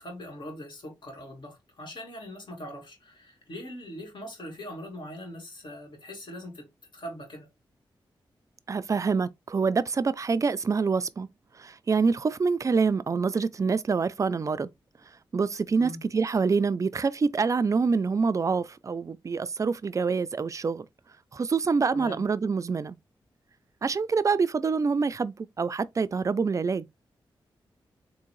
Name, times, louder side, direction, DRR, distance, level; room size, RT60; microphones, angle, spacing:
voice 1, 0.0-7.5 15.8-16.0 21.9-22.2, equal, 60° left, 2.0 m, -41 dB
voice 2, 8.7-11.3 11.6-14.7 15.3-20.8 21.3-22.9 23.8-26.8, right 5 dB, 35° right, 0.4 m, -26 dB
3.6 x 2.6 x 3.0 m
cardioid pair, 60°, 9 cm